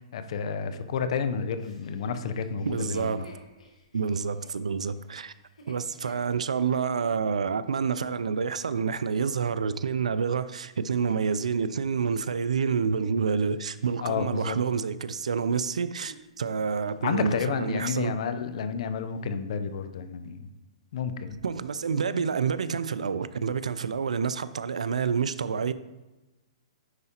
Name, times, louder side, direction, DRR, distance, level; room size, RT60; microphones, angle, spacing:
voice 1, 0.0-3.2 14.0-14.6 17.0-20.4 20.9-21.4, left 6 dB, 60° left, 0.6 m, -30 dB
Chuckle chortle, 1.6-7.2 7.8-7.9 10.5-14.5 15.1-16.6 16.9-17.2 17.6-18.3 18.6-18.7 19.1-19.6 20.2-20.3, equal, 90° left, 1.4 m, -50 dB
voice 2, 2.7-3.3 3.9-5.3 5.7-18.1 21.4-25.7, right 6 dB, 85° right, 0.4 m, -28 dB
9.7 x 4.8 x 2.9 m
hypercardioid pair, 135°, 4 cm